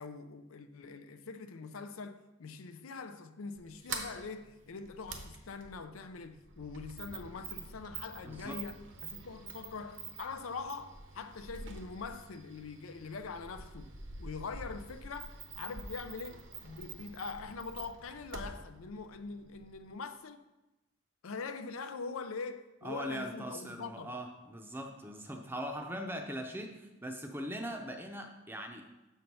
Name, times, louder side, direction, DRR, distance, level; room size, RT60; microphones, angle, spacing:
voice 1, 0.0-13.9 14.2-20.4 21.2-24.1, left 4 dB, 90° left, 0.5 m, -43 dB
Sliding door, 3.6-19.9, right 4 dB, 65° right, 0.9 m, -47 dB
voice 2, 8.2-8.6 22.8-28.9, equal, 10° right, 0.6 m, -41 dB
6.7 x 4.5 x 5.4 m
head